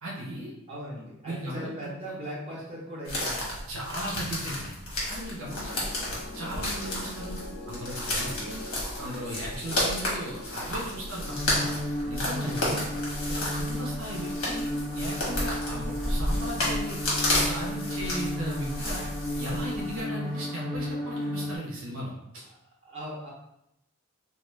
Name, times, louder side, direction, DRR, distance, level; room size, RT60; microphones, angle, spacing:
voice 1, 0.0-0.5 1.2-1.9 3.7-4.8 5.1-5.9 6.3-7.4 7.7-8.6 9.0-11.7 12.0-12.8 13.4-14.7 14.9-17.0 17.4-19.0 19.4-22.1, equal, 70° right, -3 dB, 0.5 m, -37 dB
voice 2, 0.7-3.5 3.9-4.0 5.5-5.6 12.4-12.8 22.8-23.3, equal, 30° right, -6 dB, 0.8 m, -39 dB
sound 1, 3.1-20.0, left 1 dB, 85° left, 1.0 m, -32 dB
sound 2, 5.3-11.4, left 1 dB, 65° left, 0.6 m, -43 dB
sound 3, 11.3-21.6, left 1 dB, 10° left, 1.1 m, -33 dB
2.3 x 2.1 x 3.2 m, 0.82 s
head